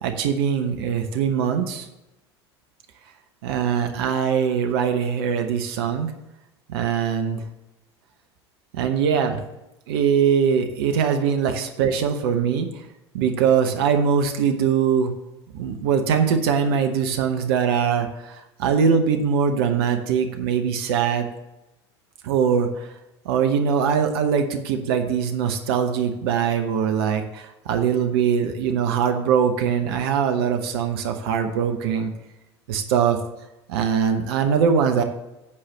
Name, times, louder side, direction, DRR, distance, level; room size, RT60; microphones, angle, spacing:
voice 1, 0.0-1.9 3.4-6.1 6.7-7.4 8.7-9.4 9.9-12.7 13.1-15.1 15.5-21.3 22.2-22.9 23.2-32.1 32.7-33.2 33.7-35.0, right 7 dB, 60° right, 6 dB, 0.9 m, -22 dB
8.6 x 4.9 x 7.2 m, 0.94 s
figure-of-eight pair, 75°, 14 cm